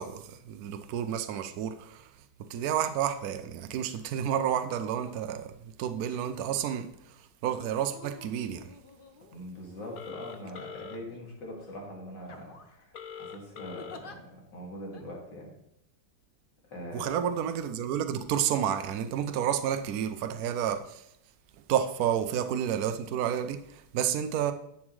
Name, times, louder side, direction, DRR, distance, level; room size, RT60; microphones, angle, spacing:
voice 1, 0.0-2.1 2.4-6.9 7.4-8.7 16.9-21.0 21.7-24.5, right 9 dB, 70° right, 1.0 m, -30 dB
sound 1, 3.9-4.1 4.6-5.3 6.1-6.6 7.6-9.7 10.4-11.2 11.6-11.8 12.2-12.8 13.8-14.2 14.9-15.0, left 4 dB, 45° left, 0.7 m, -51 dB
voice 2, 9.3-15.5 16.7-17.3, equal, 85° left, 3.0 m, -42 dB
Telephone, 9.9-11.0 12.9-14.0, left 8 dB, 65° left, 1.2 m, -42 dB
11.0 x 7.2 x 3.2 m
omnidirectional pair, 1.9 m